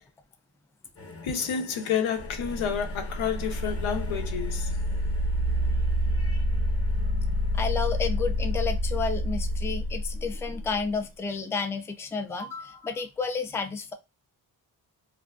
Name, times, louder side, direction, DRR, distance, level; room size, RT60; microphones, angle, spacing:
sound 1, 0.9-11.1 12.0-12.2, left 3 dB, 30° left, 0.8 m, -49 dB
voice 1, 1.2-4.7, left 7 dB, 85° left, 0.7 m, -29 dB
sound 2, 2.2-10.9, equal, 65° right, 0.9 m, -28 dB
voice 2, 7.5-13.9, left 5 dB, 5° left, 0.3 m, -31 dB
2.5 x 2.3 x 2.3 m
cardioid pair, 70°, 46 cm